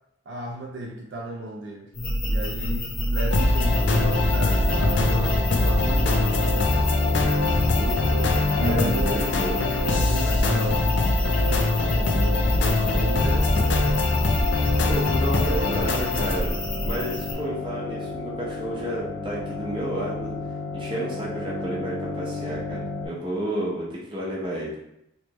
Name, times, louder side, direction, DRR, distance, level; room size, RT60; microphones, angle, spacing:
voice 1, 0.3-1.9 2.3-6.6 8.5-9.2 9.9-13.9, right 1 dB, 65° right, 0 dB, 0.4 m, -34 dB
sound 1, 1.9-17.3, left 1 dB, 45° left, 0.8 m, -29 dB
sound 2, 3.3-16.4, left 2 dB, 65° left, 0.4 m, -23 dB
sound 3, 3.6-23.1, left 2 dB, 5° right, 1.2 m, -33 dB
voice 2, 7.8-8.3 8.6-9.6 10.5-10.8 12.9-13.0 14.8-20.3 20.7-22.8 23.0-24.8, right 1 dB, 25° right, -5 dB, 0.9 m, -31 dB
3.3 x 3.1 x 3.0 m, 0.79 s
head